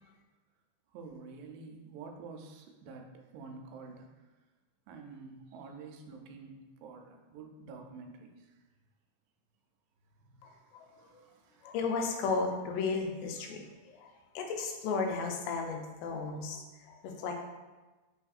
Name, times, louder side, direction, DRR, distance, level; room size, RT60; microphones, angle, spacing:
voice 1, 0.9-4.3 4.9-8.6 10.2-11.8, right 4 dB, 90° right, 3 dB, 2.2 m, -49 dB
voice 2, 10.4-11.2 11.6-17.4, left 4 dB, 90° left, 3 dB, 2.3 m, -35 dB
5.5 x 3.4 x 2.4 m, 1.2 s
omnidirectional pair, 3.8 m